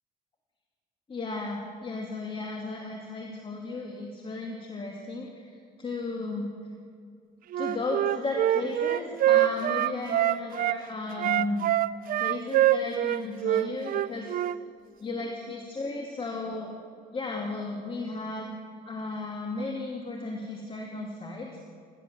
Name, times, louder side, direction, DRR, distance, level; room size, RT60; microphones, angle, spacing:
voice 1, 1.1-6.5 7.6-11.6 12.1-14.4 15.0-16.7 17.1-18.5 18.8-21.6, left 3 dB, 30° left, 0 dB, 2.7 m, -35 dB
Wind instrument woodwind instrument, 7.5-10.8 11.2-14.6, right 13 dB, 55° right, 0.6 m, -24 dB
28.5 x 12.0 x 7.6 m, 2.3 s
cardioid pair, 110°, 17 cm